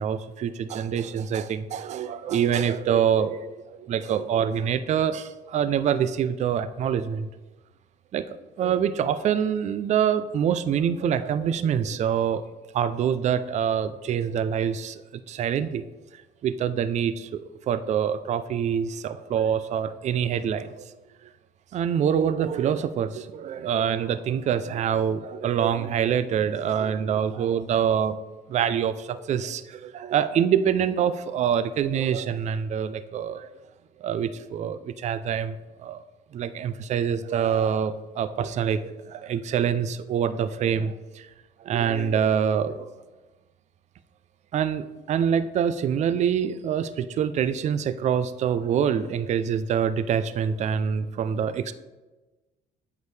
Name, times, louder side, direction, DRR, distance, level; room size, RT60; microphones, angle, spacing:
voice 1, 0.0-7.3 8.1-12.4 12.7-15.0 15.3-15.9 16.4-17.4 17.7-20.9 21.2-21.3 21.7-28.2 28.5-33.5 34.0-36.0 36.3-41.3 41.6-42.9 44.5-51.7, right 8 dB, 45° right, 13 dB, 0.4 m, -25 dB
8.2 x 5.2 x 3.3 m, 1.2 s
cardioid pair, 110°, 17 cm